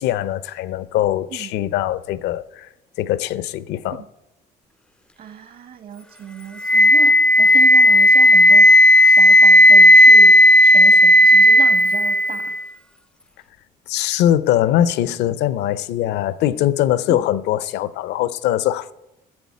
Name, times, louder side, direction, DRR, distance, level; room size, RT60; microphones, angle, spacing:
voice 1, 0.0-2.7 3.0-4.0 13.9-18.9, left 12 dB, 85° left, 0.6 m, -21 dB
voice 2, 5.2-8.7 9.0-12.5 17.1-17.2, right 8 dB, 60° right, 1.4 m, -34 dB
Wind instrument woodwind instrument, 6.6-12.6, left 1 dB, 5° left, 0.3 m, -11 dB
10.5 x 7.0 x 8.4 m
cardioid pair, 110°, 17 cm